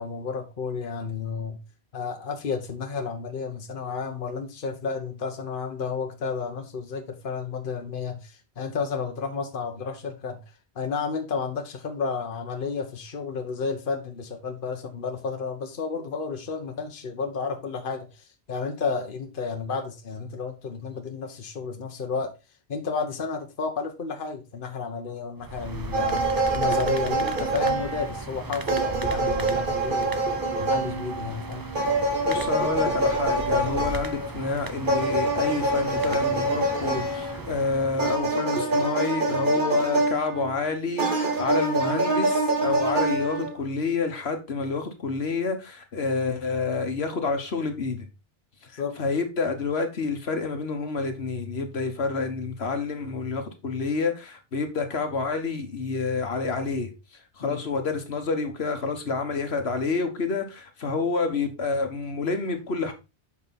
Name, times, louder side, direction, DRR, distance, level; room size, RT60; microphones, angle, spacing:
voice 1, 0.0-1.6 1.9-10.4 10.7-22.3 22.7-30.2 30.6-31.6 48.7-49.0 57.4-57.6, left 5 dB, 55° left, 1.1 m, -32 dB
sound 1, 25.4-38.4, right 3 dB, 25° right, 0.7 m, -37 dB
sound 2, 25.9-28.3 28.7-34.3 34.9-37.4 38.0-40.6 41.0-43.6, right 2 dB, 50° right, 1.7 m, -25 dB
voice 2, 32.3-48.1 48.7-56.9 57.4-62.9, left 4 dB, 75° left, 1.6 m, -28 dB
7.7 x 5.4 x 4.1 m
omnidirectional pair, 1.1 m